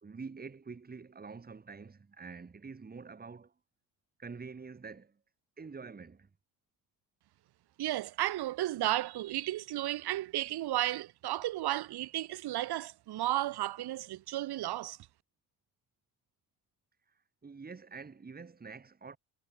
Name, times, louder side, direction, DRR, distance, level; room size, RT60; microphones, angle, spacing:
voice 1, 0.0-3.5 4.2-5.2 5.6-6.3 17.4-19.2, right 4 dB, 20° right, 2.7 m, -46 dB
voice 2, 7.8-15.0, right 14 dB, 60° right, 1.3 m, -33 dB
cardioid pair, 115°, 44 cm